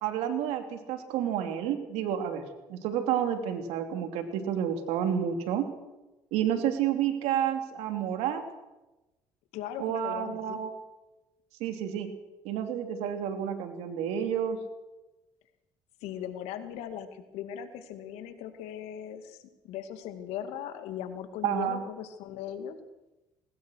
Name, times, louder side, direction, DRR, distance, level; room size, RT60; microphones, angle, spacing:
voice 1, 0.0-2.4 2.7-5.7 6.3-8.4 9.8-10.7 11.6-12.1 12.4-14.6 21.4-21.8, right 9 dB, 80° right, 6 dB, 3.0 m, -30 dB
voice 2, 9.5-10.6 16.0-22.8, left 9 dB, 80° left, 8 dB, 2.4 m, -39 dB
21.0 x 19.5 x 6.5 m, 1.0 s
supercardioid pair, 75°, 11 cm